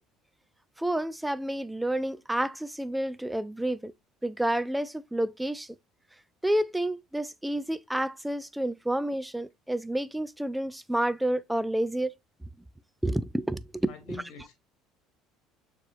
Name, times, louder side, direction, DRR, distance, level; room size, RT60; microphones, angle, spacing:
voice 1, 0.8-3.9 4.2-5.7 6.4-12.1 13.0-14.2, right 1 dB, 5° right, 0.3 m, -29 dB
voice 2, 13.9-14.5, left 7 dB, 65° left, 1.6 m, -46 dB
6.6 x 2.9 x 2.6 m
cardioid pair, 120°, 0 cm